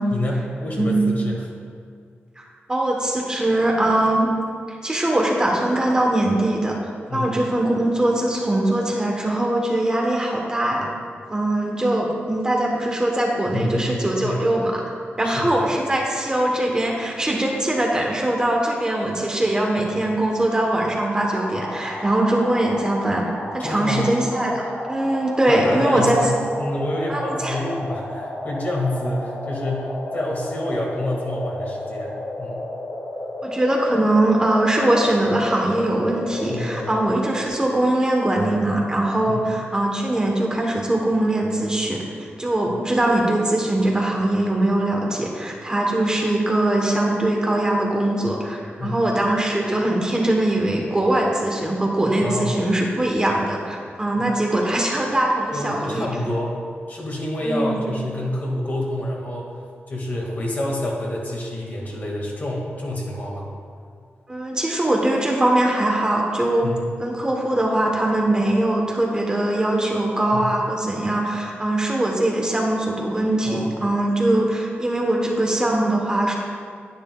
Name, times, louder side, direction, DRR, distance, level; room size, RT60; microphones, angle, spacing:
voice 1, 0.1-1.4 7.1-7.4 13.5-14.5 15.2-15.6 19.8-20.1 23.6-24.2 25.5-26.3 26.6-32.7 36.5-37.0 39.3-39.4 48.8-49.0 52.2-52.6 54.1-54.2 55.5-56.6 56.9-59.6 59.9-63.5 66.6-67.0 70.3-70.6 73.4-73.9, left 1 dB, 45° left, -2 dB, 1.8 m, -28 dB
voice 2, 0.8-1.1 2.4-4.3 4.7-10.9 11.3-14.8 15.2-26.2 27.1-27.6 33.4-42.0 42.4-56.1 57.4-57.9 64.3-66.7 67.0-76.3, right 1 dB, 20° right, -1 dB, 1.0 m, -21 dB
sound 1, 20.8-37.5, left 1 dB, 75° left, 2.1 m, -33 dB
10.5 x 10.0 x 2.3 m, 2.2 s
wide cardioid pair, 150°, 4 cm